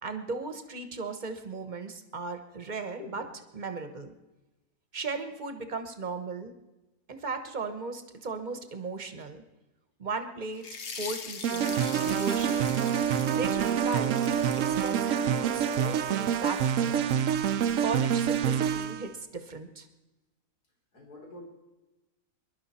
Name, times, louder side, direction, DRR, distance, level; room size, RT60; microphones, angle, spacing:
voice 1, 0.0-3.2 3.5-4.1 4.9-6.5 7.1-9.4 10.0-12.8 13.1-17.1 17.8-19.9, right 3 dB, 35° right, 8 dB, 1.1 m, -37 dB
voice 2, 3.0-3.4 20.9-21.4, left 3 dB, 90° left, -1 dB, 4.2 m, -46 dB
sound 1, 10.6-16.1, left 5 dB, 50° left, 1.2 m, -42 dB
sound 2, 11.4-19.1, right 8 dB, 65° right, 0.9 m, -27 dB
22.0 x 11.5 x 4.3 m, 1.1 s
omnidirectional pair, 1.6 m